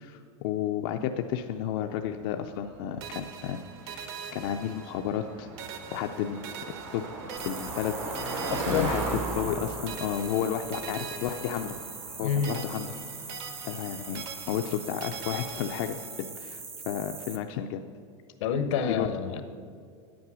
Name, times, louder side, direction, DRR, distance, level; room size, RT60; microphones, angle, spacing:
voice 1, 0.0-3.6 3.8-4.0 4.3-5.5 5.9-6.4 6.7-8.0 8.2-11.8 12.2-12.9 13.6-17.8 18.9-19.1, left 9 dB, 50° left, 5 dB, 0.5 m, -32 dB
Car passing by, 2.1-15.8, right 2 dB, 80° right, 3.0 m, -39 dB
sound 1, 3.0-5.3 5.6-9.6 9.9-12.2 12.4-16.3, right 7 dB, 55° right, 1.1 m, -43 dB
sound 2, 7.4-17.4, right 4 dB, 15° right, 0.6 m, -42 dB
voice 2, 8.5-8.9 12.2-12.6 18.4-19.4, left 7 dB, 75° left, 10 dB, 0.9 m, -28 dB
9.3 x 8.6 x 6.1 m, 2.2 s
supercardioid pair, 155°, 16 cm